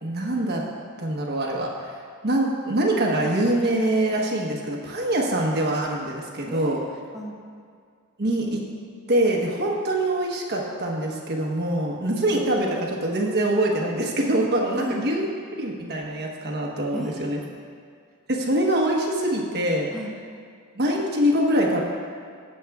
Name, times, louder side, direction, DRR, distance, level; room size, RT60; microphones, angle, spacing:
voice 1, 0.0-0.6 1.0-2.0 2.2-6.8 8.2-8.6 9.1-15.3 15.6-17.4 18.3-19.9 20.8-21.8, right 1 dB, 50° right, -1 dB, 1.1 m, -24 dB
voice 2, 6.4-7.4 14.7-15.1 16.9-17.9 19.9-20.1, equal, ahead, -5 dB, 1.2 m, -36 dB
19.0 x 7.5 x 2.4 m, 2.1 s
head